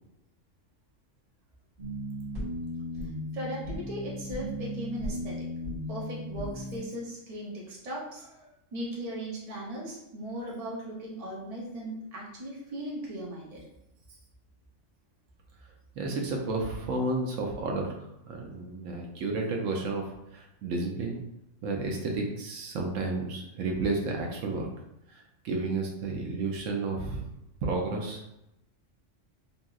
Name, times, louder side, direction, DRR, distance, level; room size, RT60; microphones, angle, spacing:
sound 1, 1.8-6.8, equal, 60° right, 1.7 m, -36 dB
voice 1, 3.3-5.3 5.9-13.6, right 1 dB, 35° right, -4 dB, 0.7 m, -38 dB
voice 2, 16.0-21.2 21.6-24.7 25.1-27.3 27.6-28.2, right 3 dB, 80° right, 1 dB, 0.9 m, -32 dB
2.8 x 2.6 x 2.3 m, 0.85 s
omnidirectional pair, 1.3 m